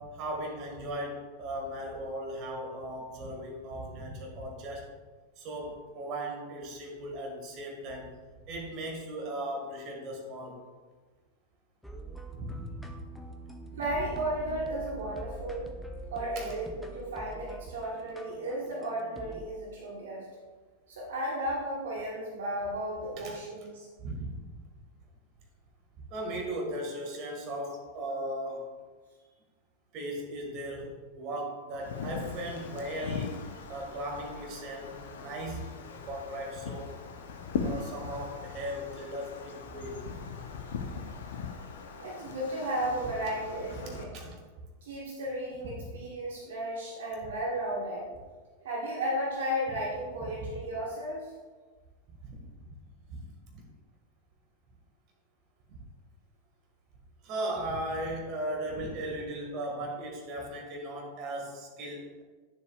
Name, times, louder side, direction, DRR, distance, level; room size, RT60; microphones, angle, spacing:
voice 1, 0.0-4.9 5.4-8.1 8.5-10.6 12.3-12.9 16.4-16.5 23.1-23.4 24.0-24.4 26.1-28.7 29.9-37.0 37.6-40.0 40.8-41.0 43.7-44.4 45.6-45.7 50.2-50.3 52.2-52.4 52.6-52.8 53.1-53.2 53.5-53.6 55.7-55.8 57.2-62.2, right 1 dB, 40° right, 1 dB, 1.7 m, -37 dB
sound 1, 11.8-19.5, right 2 dB, 5° left, 0.7 m, -44 dB
voice 2, 13.7-15.7 16.1-20.3 20.9-23.9 42.0-44.1 44.8-48.1 48.6-51.3, right 1 dB, 60° right, -4 dB, 1.4 m, -34 dB
Wind, 31.7-44.0, left 5 dB, 60° left, 0.8 m, -40 dB
9.8 x 7.0 x 2.4 m, 1.4 s
figure-of-eight pair, 90°, 0 cm